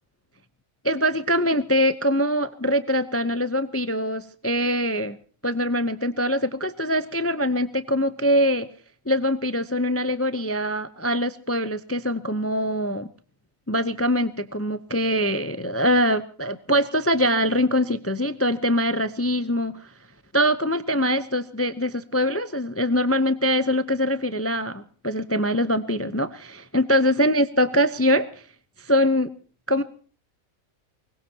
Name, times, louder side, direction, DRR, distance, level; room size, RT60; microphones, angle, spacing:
voice 1, 0.8-5.2 5.4-8.7 9.1-13.1 13.7-19.8 20.3-28.3 28.8-29.3 29.7-29.8, equal, 20° left, 12 dB, 0.4 m, -23 dB
24.0 x 21.0 x 2.8 m, 0.40 s
omnidirectional pair, 1.4 m